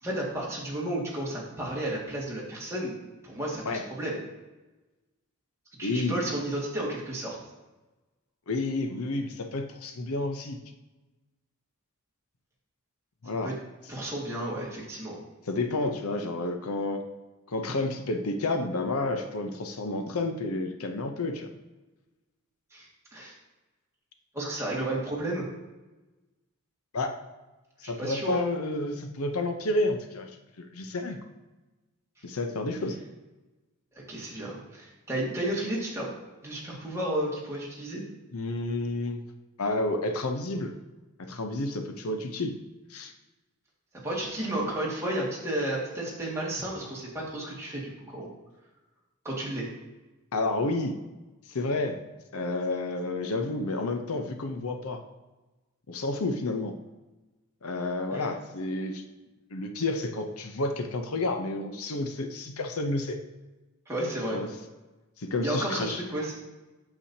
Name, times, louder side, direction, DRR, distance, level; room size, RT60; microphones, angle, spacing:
voice 1, 0.0-2.9 3.2-4.2 5.8-7.4 13.4-13.5 13.9-15.2 22.7-23.3 24.3-25.5 27.8-28.4 34.0-36.1 36.4-38.0 44.0-48.3 49.2-49.7 58.1-58.2 63.9-64.4 65.4-66.3, right 1 dB, 15° right, -5 dB, 2.1 m, -32 dB
voice 2, 5.8-6.2 8.5-10.6 13.2-13.5 15.5-17.0 17.5-21.5 26.9-27.2 27.8-30.3 30.6-31.2 32.2-33.0 38.3-39.2 39.6-40.7 41.2-42.6 42.9-43.1 50.3-51.0 51.5-52.0 52.3-55.0 55.9-56.8 57.6-59.0 59.5-63.2 64.3-64.5 65.2-66.0, left 2 dB, 75° left, 6 dB, 0.7 m, -30 dB
8.4 x 7.0 x 2.8 m, 1.1 s
head